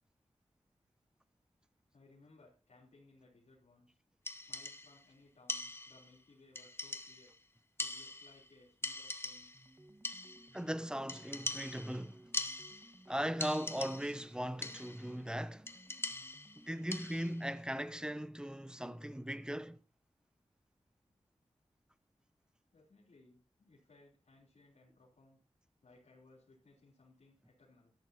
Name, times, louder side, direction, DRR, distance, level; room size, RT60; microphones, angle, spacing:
voice 1, 1.9-4.0 4.5-7.3 7.8-9.6 22.7-25.4 25.8-27.9, left 2 dB, 80° left, 3.5 m, -63 dB
sound 1, 4.3-5.0 5.5-6.2 6.6-7.4 7.8-8.5 8.8-9.7 10.0-10.6 11.1-13.1 13.4-14.3 14.6-15.1 15.7-17.4, left 2 dB, 20° left, 1.1 m, -42 dB
sound 2, 9.5-17.2, right 1 dB, 25° right, 1.5 m, -61 dB
voice 2, 10.5-12.3 13.1-15.7 16.5-19.8, equal, 5° right, 0.9 m, -39 dB
13.0 x 12.0 x 2.9 m
cardioid pair, 50°, 11 cm